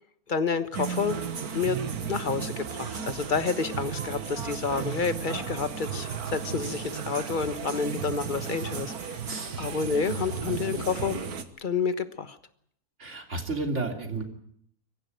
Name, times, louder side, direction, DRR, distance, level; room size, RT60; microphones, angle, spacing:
voice 1, 0.3-1.2 1.5-1.8 2.1-8.9 9.6-11.2 11.6-12.4, left 5 dB, 35° left, 11 dB, 1.4 m, -29 dB
sound 1, 0.7-11.4, right 7 dB, 90° right, 1.9 m, -34 dB
voice 2, 9.3-9.6 10.2-10.6 13.0-14.2, right 3 dB, 50° right, 4 dB, 3.3 m, -33 dB
24.0 x 15.0 x 9.3 m, 0.69 s
omnidirectional pair, 1.5 m